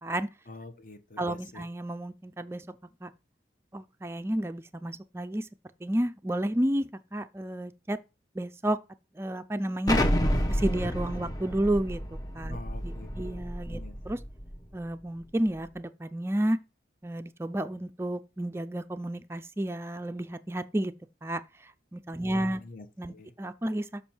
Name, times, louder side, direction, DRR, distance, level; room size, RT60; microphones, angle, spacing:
voice 1, 0.5-1.6 12.5-13.9 22.2-23.3, left 2 dB, 45° left, 1.0 m, -46 dB
voice 2, 1.2-2.7 3.0-3.1 3.7-5.5 5.8-8.0 8.4-8.8 9.2-10.0 10.5-12.6 12.8-14.2 14.7-16.6 17.0-20.9 21.2-22.6 23.0-24.0, right 1 dB, 15° right, 0.3 m, -31 dB
Explosion, 9.9-14.6, equal, 20° left, 0.8 m, -30 dB
7.1 x 5.3 x 4.4 m
head